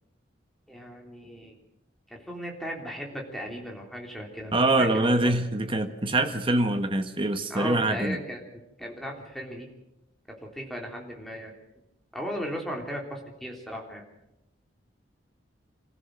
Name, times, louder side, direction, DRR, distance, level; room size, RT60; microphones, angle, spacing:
voice 1, 0.7-1.5 2.1-4.5 4.8-5.3 7.5-9.7 10.3-11.5 12.1-14.0, equal, ahead, 0 dB, 3.4 m, -36 dB
voice 2, 4.5-8.2, right 2 dB, 30° right, 7 dB, 1.4 m, -24 dB
26.0 x 15.5 x 6.5 m, 0.84 s
head